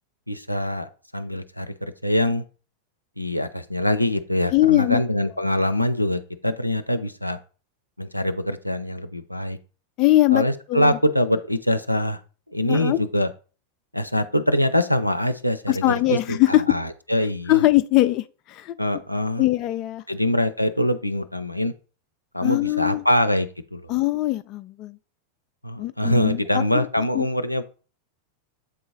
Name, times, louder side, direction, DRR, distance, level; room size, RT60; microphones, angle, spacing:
voice 1, 0.3-2.4 3.2-7.4 8.0-9.6 10.3-12.2 12.5-13.3 13.9-17.6 18.8-19.4 20.1-21.7 22.3-23.8 25.6-27.6, left 1 dB, 90° left, 0.5 m, -24 dB
voice 2, 4.5-5.0 10.0-10.4 10.7-11.0 12.7-13.0 15.7-16.8 17.5-18.8 19.4-20.0 22.4-23.0 23.9-25.0 25.8-26.9 27.1-27.3, left 17 dB, 35° left, 0.4 m, -21 dB
8.2 x 3.8 x 3.9 m
figure-of-eight pair, 90°, 0 cm